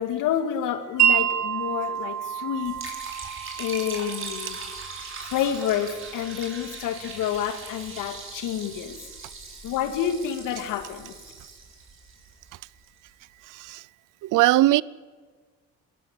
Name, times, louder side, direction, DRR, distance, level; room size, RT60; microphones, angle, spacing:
voice 1, 0.0-3.0 3.6-4.6 5.2-9.0 9.6-11.1, left 9 dB, 80° left, 2.3 m, -29 dB
Wind chime, 1.0-7.1, right 10 dB, 55° right, 3.6 m, -29 dB
Liquid, 2.6-12.8, right 4 dB, 40° right, 6.2 m, -40 dB
voice 2, 13.5-13.8 14.2-14.8, right 17 dB, 75° right, 0.7 m, -20 dB
22.5 x 15.5 x 8.3 m
supercardioid pair, 70°, 31 cm